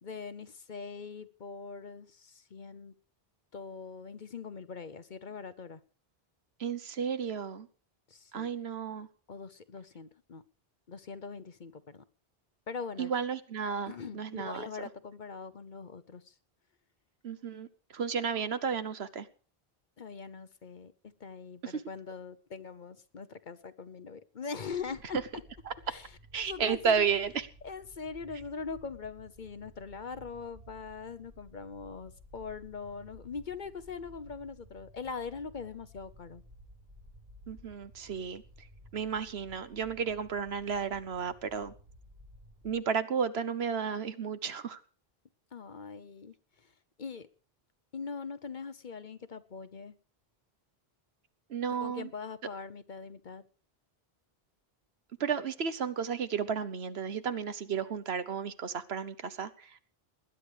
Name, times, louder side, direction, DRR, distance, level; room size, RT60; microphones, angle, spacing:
voice 1, 0.0-2.9 3.5-5.8 8.1-8.5 9.3-10.4 10.9-12.0 12.7-13.1 13.9-16.3 20.0-20.9 21.2-25.2 25.9-26.1 26.4-27.1 27.6-36.4 45.5-46.3 47.0-47.3 47.9-49.9 51.7-53.4, left 5 dB, 50° left, 13 dB, 1.0 m, -42 dB
voice 2, 6.6-7.7 8.3-9.1 13.0-14.7 17.2-17.7 17.9-19.3 21.6-21.8 25.7-25.8 26.3-27.5 37.5-38.4 38.9-41.7 42.6-44.8 51.5-52.1 55.2-59.8, right 6 dB, 80° right, 13 dB, 1.3 m, -33 dB
sound 1, 24.7-42.7, equal, 50° right, 5.5 m, -55 dB
20.0 x 10.0 x 4.9 m, 0.39 s
omnidirectional pair, 1.1 m